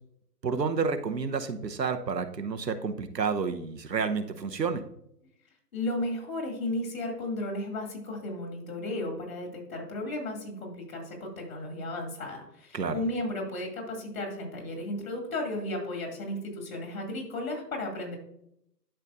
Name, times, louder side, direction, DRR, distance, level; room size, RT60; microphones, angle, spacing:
voice 1, 0.4-4.8 12.7-12.9, right 5 dB, 85° right, 9 dB, 1.0 m, -30 dB
voice 2, 5.7-18.2, left 1 dB, 55° left, 2 dB, 2.6 m, -34 dB
11.5 x 5.3 x 2.5 m, 0.76 s
figure-of-eight pair, 140°, 49 cm